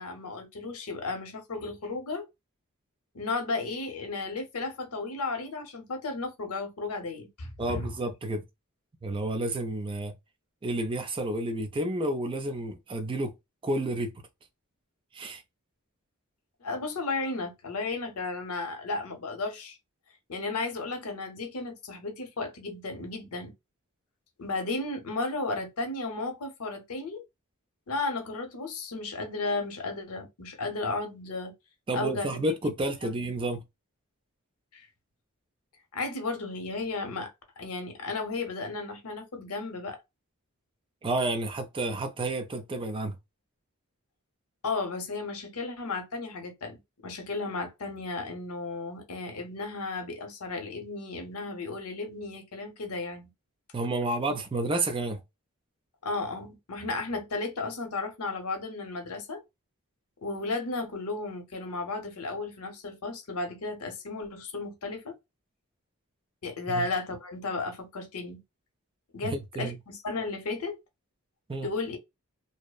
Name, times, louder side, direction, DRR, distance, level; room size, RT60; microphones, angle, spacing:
voice 1, 0.0-2.3 3.1-7.9 16.6-19.8 20.3-23.5 24.4-27.2 27.9-31.5 31.9-32.4 33.0-33.3 34.7-34.9 35.9-40.0 44.6-53.3 56.0-59.4 60.2-65.2 66.4-68.4 69.1-70.8 71.6-72.0, left 3 dB, 80° left, 0.7 m, -34 dB
voice 2, 7.6-8.4 9.0-10.1 10.6-13.3 13.6-14.1 15.1-15.4 31.9-33.6 41.0-43.1 53.7-55.2 66.7-66.9 69.2-69.8 71.5-71.7, right 2 dB, 25° right, 0.4 m, -30 dB
2.7 x 2.0 x 2.3 m
head